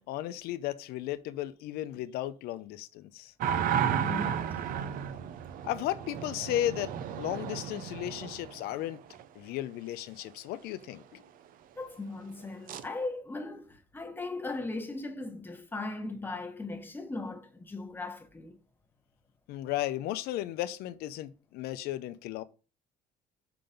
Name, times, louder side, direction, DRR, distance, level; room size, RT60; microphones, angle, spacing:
voice 1, 0.0-3.3 5.6-9.0 9.4-11.2 19.5-22.4, left 14 dB, 85° left, 0.6 m, -35 dB
sound 1, 3.4-9.2 12.7-12.9, right 8 dB, 65° right, 0.6 m, -33 dB
voice 2, 3.9-4.6 11.8-18.6, left 2 dB, 15° left, 1.1 m, -38 dB
5.8 x 3.9 x 5.1 m
cardioid pair, 130°, 16 cm